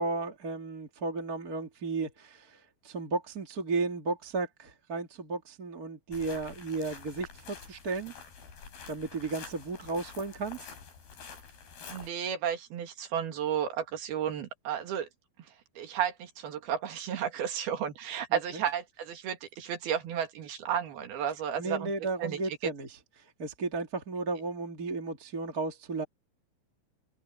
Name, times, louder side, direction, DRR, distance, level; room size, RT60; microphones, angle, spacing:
voice 1, 0.0-8.1 8.9-10.7 18.3-18.6 21.6-26.0, right 3 dB, 30° right, 2.2 m, -34 dB
sound 1, 6.1-12.1, left 5 dB, 85° left, 6.9 m, -47 dB
voice 2, 11.9-15.1 15.8-21.9 22.2-22.6, right 9 dB, 90° right, 4.1 m, -33 dB
open air
omnidirectional pair, 4.3 m